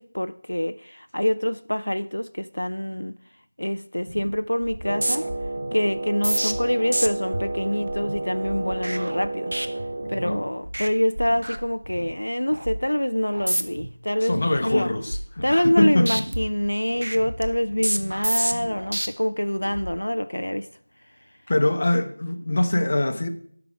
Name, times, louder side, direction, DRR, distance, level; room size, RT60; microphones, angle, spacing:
voice 1, 0.0-3.1 3.6-5.3 5.7-9.5 10.1-14.9 15.4-20.7, left 1 dB, 80° left, 0.4 m, -25 dB
sound 1, 4.1-4.3 4.6-10.3 10.6-10.9 11.2-12.1 12.5-12.8 13.3-13.9 14.3-15.8 16.1-19.1 19.6-19.9, right 1 dB, 60° right, 1.0 m, -30 dB
Wind instrument woodwind instrument, 4.8-10.5, right 2 dB, 25° right, 0.7 m, -31 dB
voice 2, 14.2-16.1 21.5-23.3, left 1 dB, 35° left, 0.8 m, -23 dB
12.0 x 6.0 x 4.7 m
figure-of-eight pair, 170°, 0 cm